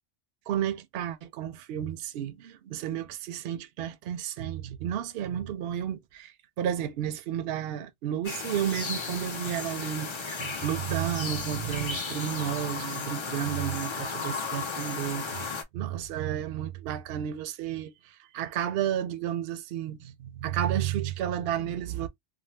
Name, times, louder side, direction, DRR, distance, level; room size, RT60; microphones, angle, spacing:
voice 1, 0.5-15.5 15.7-22.1, right 10 dB, 65° right, 0.7 m, -32 dB
sound 1, 8.2-15.6, left 4 dB, 45° left, 0.4 m, -35 dB
2.6 x 2.3 x 3.1 m
omnidirectional pair, 1.2 m